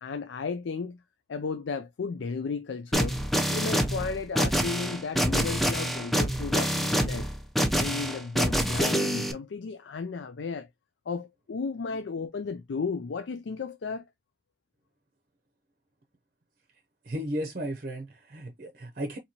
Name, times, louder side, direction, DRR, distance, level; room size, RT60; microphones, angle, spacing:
voice 1, 0.0-1.0 1.3-3.2 3.5-7.3 7.8-10.7 11.1-14.0, left 4 dB, 80° left, 0.4 m, -34 dB
sound 1, 2.9-9.3, equal, ahead, 0.5 m, -26 dB
voice 2, 17.0-19.2, equal, 50° right, 0.6 m, -34 dB
4.4 x 2.8 x 2.8 m
head